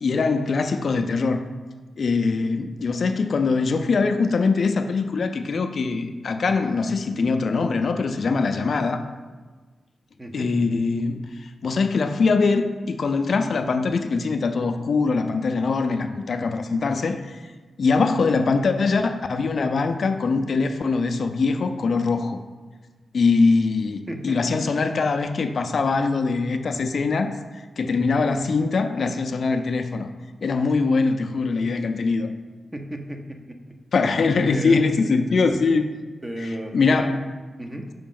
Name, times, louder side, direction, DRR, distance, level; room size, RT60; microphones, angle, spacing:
voice 1, 0.0-1.5 2.0-9.0 10.3-17.4 17.8-22.4 23.1-30.1 30.4-32.3 33.9-35.8 36.4-37.2, left 4 dB, 60° left, 7 dB, 0.4 m, -22 dB
voice 2, 10.2-10.5 24.1-24.6 32.7-33.6 34.5-34.8 35.4-35.6 36.2-36.8 37.6-37.9, right 1 dB, 20° right, 4 dB, 0.7 m, -33 dB
5.0 x 5.0 x 3.7 m, 1.4 s
cardioid pair, 80°, 0 cm